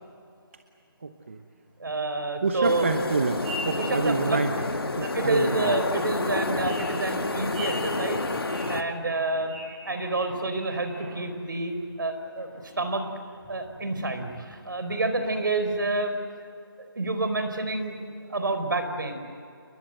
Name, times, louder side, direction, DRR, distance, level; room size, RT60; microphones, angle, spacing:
voice 1, 1.0-1.4 2.4-4.5 4.9-5.7 8.6-8.7, right 4 dB, 30° right, 6 dB, 1.1 m, -28 dB
sound 1, 1.2-1.3 1.6-1.7 2.6-2.7 3.1-4.5 5.0-5.1 5.8-5.9 6.2-11.4 11.6-11.9 12.4-13.0 13.3-14.4 14.8-15.2, equal, 15° right, 6.0 m, -41 dB
voice 2, 1.8-2.9 3.8-4.4 5.0-8.2 8.7-9.5 9.8-12.5 12.8-13.0 13.5-16.1 16.8-18.0 18.3-19.1, right 2 dB, 55° right, 7 dB, 4.5 m, -28 dB
sound 2, 2.6-8.8, left 2 dB, 70° left, 1.9 m, -29 dB
29.5 x 22.0 x 7.8 m, 2.4 s
figure-of-eight pair, 175°, 13 cm